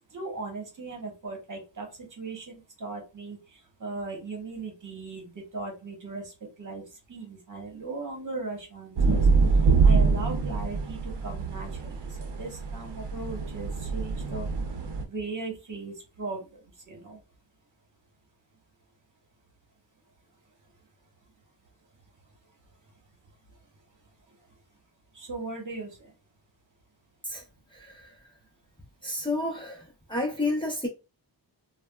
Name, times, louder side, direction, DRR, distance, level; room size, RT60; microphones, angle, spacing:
voice 1, 0.1-1.9 2.2-17.2 24.3-24.4 25.1-26.1, right 3 dB, 45° right, 1.2 m, -38 dB
sound 1, 9.0-15.0, right 4 dB, 70° right, 0.7 m, -25 dB
voice 2, 27.2-28.4 29.0-30.9, left 2 dB, 10° left, 0.8 m, -31 dB
3.3 x 2.2 x 2.2 m
wide cardioid pair, 95°, 44 cm